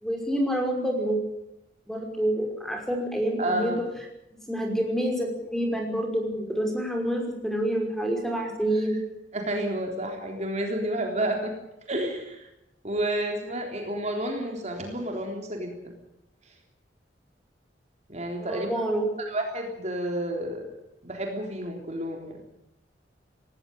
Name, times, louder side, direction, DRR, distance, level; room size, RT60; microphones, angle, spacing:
voice 1, 0.0-1.2 1.9-3.7 4.5-9.0 18.4-19.1, right 1 dB, ahead, 2 dB, 5.5 m, -27 dB
voice 2, 3.4-3.8 9.3-11.5 11.9-12.5 12.8-16.0 18.1-18.7 19.3-20.7 21.0-22.4, right 1 dB, 40° right, 2 dB, 3.7 m, -30 dB
18.5 x 18.0 x 9.1 m, 0.86 s
head